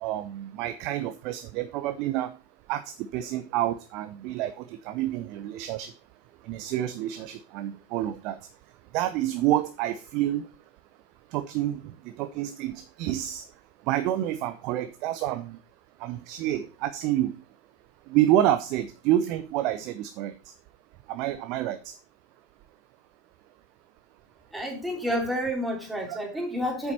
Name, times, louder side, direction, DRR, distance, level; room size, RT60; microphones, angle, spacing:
voice 1, 0.0-2.3 2.7-5.9 6.5-8.4 8.9-10.5 11.3-13.4 13.9-15.6 16.0-17.3 18.1-20.3 21.1-21.9 26.1-26.2, right 13 dB, 40° right, 0.7 m, -28 dB
voice 2, 24.5-26.9, equal, 5° right, 3.1 m, -29 dB
8.5 x 7.1 x 4.2 m
figure-of-eight pair, 90°, 0 cm